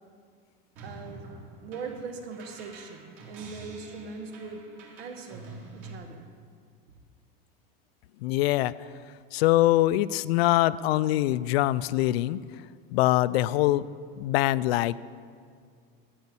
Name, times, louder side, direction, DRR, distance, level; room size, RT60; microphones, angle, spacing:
sound 1, 0.8-6.0, right 2 dB, 50° right, 2.5 m, -47 dB
voice 1, 0.8-1.2 1.6-4.6 5.0-6.3, right 5 dB, 90° right, 5 dB, 1.5 m, -40 dB
voice 2, 8.2-8.7 9.3-12.4 12.9-13.8 14.2-15.0, left 15 dB, 80° left, 17 dB, 0.5 m, -23 dB
12.5 x 5.7 x 8.5 m, 2.1 s
supercardioid pair, 165°, 30 cm